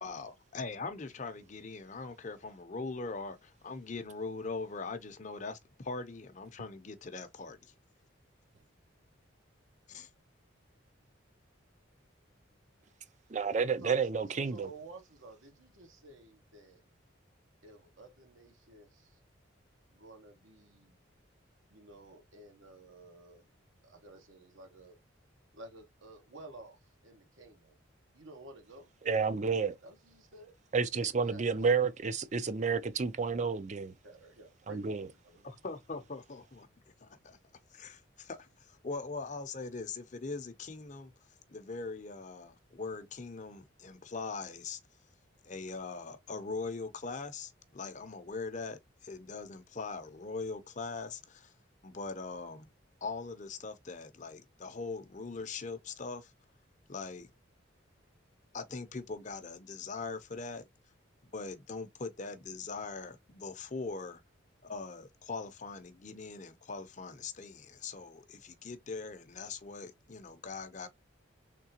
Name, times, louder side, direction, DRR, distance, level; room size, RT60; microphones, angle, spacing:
voice 1, 0.0-7.6 9.9-10.1 35.4-36.7 37.0-37.4 37.7-41.1 41.5-44.8 45.4-51.5 51.8-52.7 53.0-56.3 56.9-57.3 58.5-60.7 61.3-64.2 64.6-70.9, left 4 dB, 40° left, 0.6 m, -41 dB
voice 2, 13.3-14.7 29.1-29.8 30.7-33.9 34.7-35.1, right 5 dB, 35° right, 0.4 m, -30 dB
voice 3, 14.3-16.8 17.6-19.2 19.9-21.0 21.7-23.5 23.8-25.0 25.5-27.8 28.1-28.9 29.8-30.5 31.2-31.5 33.1-33.5 34.0-35.5, right 2 dB, 80° right, 1.1 m, -53 dB
3.7 x 3.3 x 2.8 m
head